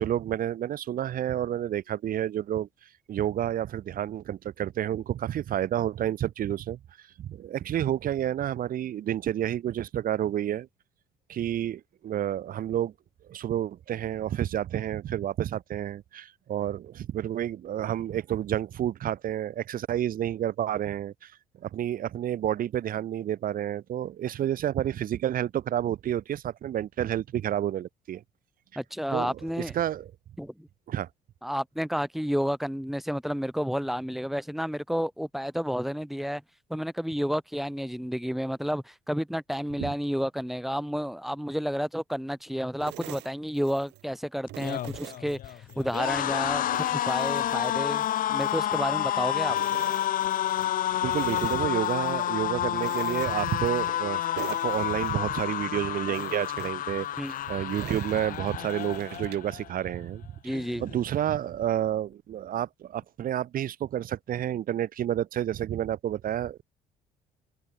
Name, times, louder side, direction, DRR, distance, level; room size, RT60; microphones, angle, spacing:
voice 1, 0.0-2.7 3.1-10.7 11.3-12.9 13.3-21.3 21.6-28.2 29.1-30.1 30.9-31.1 39.8-39.9 51.0-57.1 57.5-66.6, right 11 dB, 55° right, 1.8 m, -30 dB
voice 2, 28.8-29.8 30.4-30.7 31.4-36.4 36.7-49.6 57.2-57.3 60.4-60.8, equal, ahead, 3.6 m, -31 dB
sound 1, 42.8-44.1 44.5-46.1 46.5-49.2 49.5-50.7 51.1-52.3 52.8-54.1 54.4-55.7 56.1-59.6, right 19 dB, 85° right, 3.4 m, -45 dB
sound 2, 44.5-59.7 60.0-60.3 60.5-61.3, left 12 dB, 55° left, 0.8 m, -29 dB
cardioid pair, 110°, 17 cm